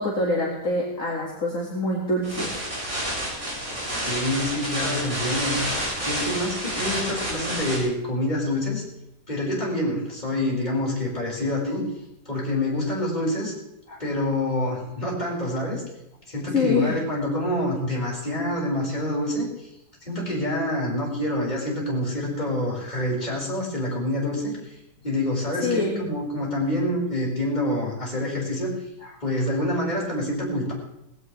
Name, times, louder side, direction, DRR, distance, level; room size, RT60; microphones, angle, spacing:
voice 1, 0.0-2.5 16.5-17.0 25.6-26.0, left 2 dB, 55° left, -3 dB, 2.4 m, -25 dB
sound 1, 2.2-7.8, equal, 60° right, 6.5 m, -29 dB
voice 2, 4.0-5.6 6.0-8.8 9.3-11.8 12.2-13.5 13.9-15.8 16.3-19.7 20.0-24.7 25.0-28.7 29.0-30.7, left 1 dB, 25° left, -4 dB, 5.0 m, -27 dB
19.0 x 16.5 x 3.3 m, 0.87 s
omnidirectional pair, 1.7 m